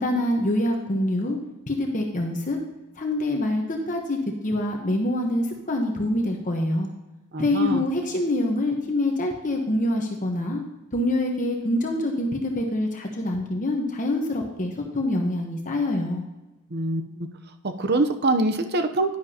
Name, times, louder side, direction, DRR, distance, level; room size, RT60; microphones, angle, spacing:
voice 1, 0.0-1.4 1.7-2.6 3.0-6.9 7.4-10.6 10.9-16.2, left 1 dB, 35° left, 2 dB, 1.0 m, -25 dB
voice 2, 7.3-7.8 16.7-17.3 17.6-19.2, right 2 dB, 45° right, 7 dB, 0.7 m, -24 dB
10.5 x 10.5 x 2.9 m, 1.0 s
head